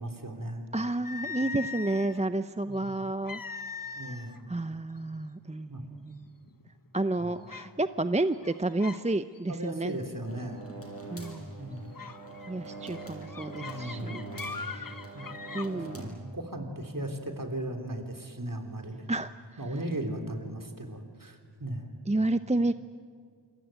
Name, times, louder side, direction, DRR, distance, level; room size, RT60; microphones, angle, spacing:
voice 1, 0.0-0.7 2.7-3.0 4.0-4.4 5.7-5.8 7.2-7.5 9.5-10.6 11.6-11.9 13.6-14.4 15.1-15.3 15.7-19.1 19.6-21.9, right 1 dB, 45° right, 4 dB, 3.7 m, -37 dB
voice 2, 0.7-3.4 4.1-4.2 4.5-6.4 6.9-9.9 11.1-11.5 12.5-14.2 14.6-15.1 15.5-16.1 19.1-19.3 22.1-22.7, right 2 dB, 15° right, 11 dB, 0.6 m, -31 dB
sound 1, 1.0-2.2 3.3-4.4 4.7-5.0 5.7-5.8 6.3-6.7 7.5-7.7 8.3-9.1 9.4-9.7 11.2-11.4 11.9-15.7, left 4 dB, 45° left, 1.2 m, -41 dB
sound 2, 10.2-16.0, right 2 dB, 30° left, 7.1 m, -43 dB
28.0 x 22.0 x 9.2 m, 2.1 s
wide cardioid pair, 45°, 45 cm